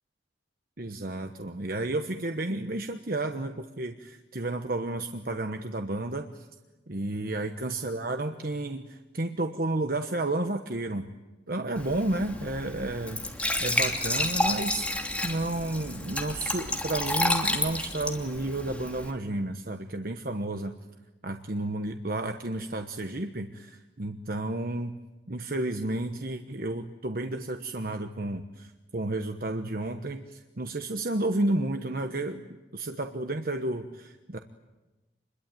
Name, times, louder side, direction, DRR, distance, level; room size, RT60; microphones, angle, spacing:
voice 1, 0.8-6.5 6.9-11.1 11.5-20.7 21.2-25.0 25.3-34.4, right 2 dB, 55° right, 6 dB, 1.2 m, -32 dB
Glass / Trickle dribble / Fill (with liquid), 11.8-19.1, left 1 dB, 5° left, 2.7 m, -30 dB
27.5 x 22.0 x 9.2 m, 1.1 s
head